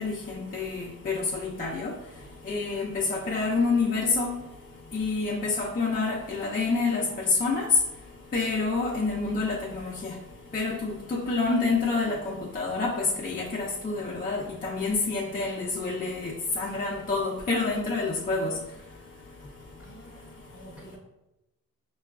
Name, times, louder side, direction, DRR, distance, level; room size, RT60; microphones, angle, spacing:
voice 1, 0.0-1.9 2.5-4.3 4.9-7.7 8.3-10.1 10.5-12.9 13.2-18.5, left 3 dB, 25° left, -3 dB, 0.5 m, -28 dB
voice 2, 19.8-21.0, right 2 dB, 5° right, -5 dB, 0.8 m, -50 dB
5.3 x 2.3 x 2.3 m, 0.91 s
wide cardioid pair, 125°, 33 cm